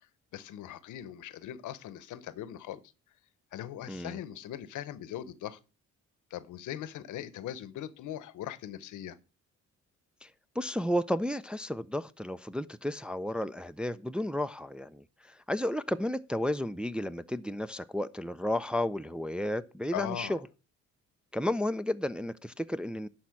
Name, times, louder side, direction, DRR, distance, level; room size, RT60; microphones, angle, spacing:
voice 1, 0.3-2.8 3.5-5.6 6.3-9.2 19.9-20.4, left 11 dB, 80° left, 0.8 m, -40 dB
voice 2, 3.9-4.2 10.2-10.3 10.6-20.4 21.3-23.1, left 1 dB, 5° right, 0.4 m, -32 dB
11.0 x 4.3 x 5.8 m
cardioid pair, 90°, 30 cm